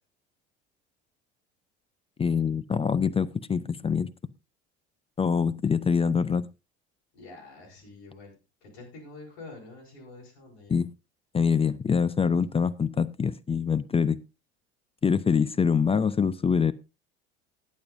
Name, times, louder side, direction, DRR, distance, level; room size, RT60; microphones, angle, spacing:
voice 1, 2.2-4.1 5.2-6.5 10.7-10.9 11.3-14.2 15.0-16.7, left 6 dB, 15° left, 0.5 m, -24 dB
voice 2, 7.1-10.8, left 3 dB, 70° left, 5.7 m, -47 dB
20.0 x 7.4 x 2.6 m
hypercardioid pair, 70°, 33 cm